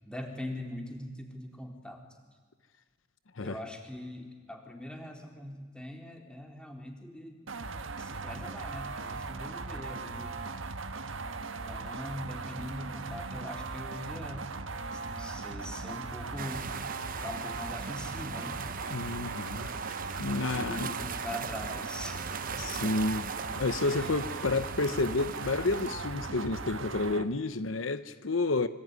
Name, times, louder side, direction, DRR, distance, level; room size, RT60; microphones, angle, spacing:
voice 1, 0.0-2.0 3.4-7.4 8.0-10.4 11.3-14.5 14.9-16.7 17.2-18.7 20.5-22.2 23.4-24.1, left 1 dB, 5° left, 3.8 m, -42 dB
sound 1, 7.5-27.3, right 3 dB, 75° right, 1.4 m, -39 dB
sound 2, 16.4-25.9, right 7 dB, 45° right, 0.9 m, -41 dB
voice 2, 18.9-19.7 20.2-20.9 22.6-23.3 23.5-28.7, left 3 dB, 75° left, 0.9 m, -30 dB
25.5 x 24.0 x 9.6 m
head